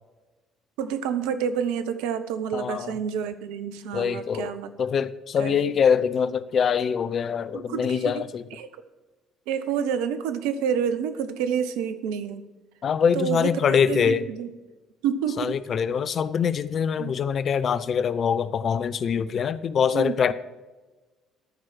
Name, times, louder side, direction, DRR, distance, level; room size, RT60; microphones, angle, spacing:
voice 1, 0.8-4.7 5.4-5.8 7.5-8.8 9.5-12.4 13.1-14.5 15.0-15.6 17.0-17.2 19.9-20.3, right 7 dB, 65° right, 11 dB, 0.7 m, -29 dB
voice 2, 2.5-2.9 3.9-4.5 4.8-8.4 12.8-14.3 15.4-20.3, left 7 dB, 45° left, 14 dB, 0.5 m, -24 dB
12.5 x 4.7 x 7.4 m, 1.2 s
figure-of-eight pair, 50°, 0 cm